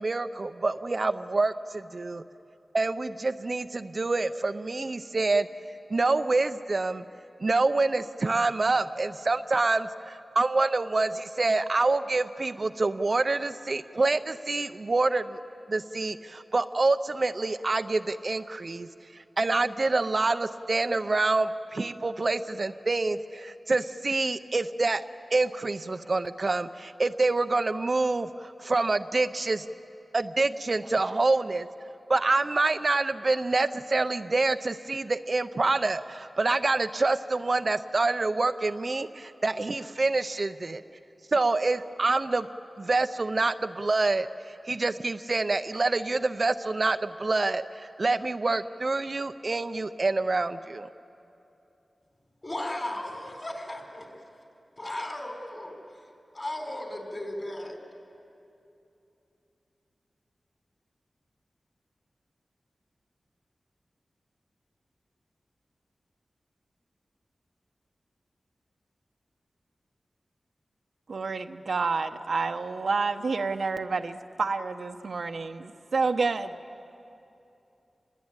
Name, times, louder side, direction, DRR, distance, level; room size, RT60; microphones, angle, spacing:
voice 1, 0.0-2.2 2.7-5.5 5.9-7.0 7.4-15.4 15.7-25.0 25.3-29.7 30.1-31.7 32.1-40.8 41.3-42.5 42.8-50.9, right 3 dB, 50° right, 10 dB, 0.6 m, -27 dB
voice 2, 52.4-54.3 54.8-56.1 56.3-57.8, left 1 dB, 30° left, 3 dB, 4.4 m, -36 dB
voice 3, 71.1-76.6, right 4 dB, 75° right, 7 dB, 0.9 m, -29 dB
27.0 x 21.0 x 8.9 m, 2.8 s
wide cardioid pair, 80°, 0 cm